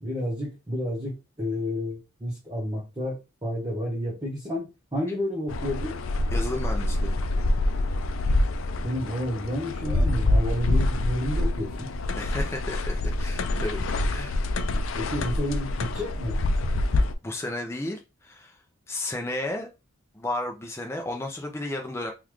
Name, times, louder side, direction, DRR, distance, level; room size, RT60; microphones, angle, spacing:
voice 1, 0.0-6.0 8.7-11.9 14.9-16.4, left 1 dB, 20° right, 0.9 m, -30 dB
sound 1, 5.5-17.1, left 2 dB, 75° left, 0.4 m, -26 dB
voice 2, 6.3-7.2 12.1-13.8 14.1-14.4 17.2-18.6 18.9-19.7 20.1-22.1, left 1 dB, 15° left, 0.4 m, -33 dB
3.8 x 2.3 x 3.0 m
head